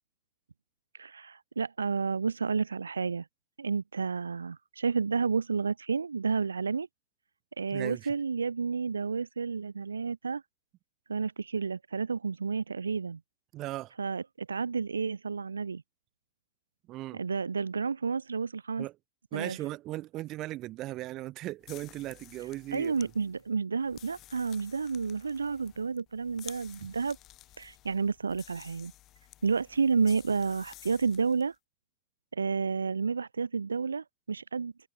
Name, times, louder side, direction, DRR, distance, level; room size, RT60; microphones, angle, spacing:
voice 1, 1.0-3.3 3.6-6.9 7.6-10.4 11.1-13.2 14.0-15.8 17.1-18.9 19.3-19.6 22.7-27.2 27.6-28.9 29.4-31.5 32.3-34.7, right 5 dB, 75° right, 0.7 m, -31 dB
voice 2, 7.7-8.1 13.5-13.9 16.9-17.2 18.8-18.9 19.3-23.1 26.8-26.9, right 16 dB, 35° right, 1.2 m, -38 dB
sound 1, 21.6-31.5, left 15 dB, 35° left, 1.3 m, -53 dB
figure-of-eight pair, 90°, 0 cm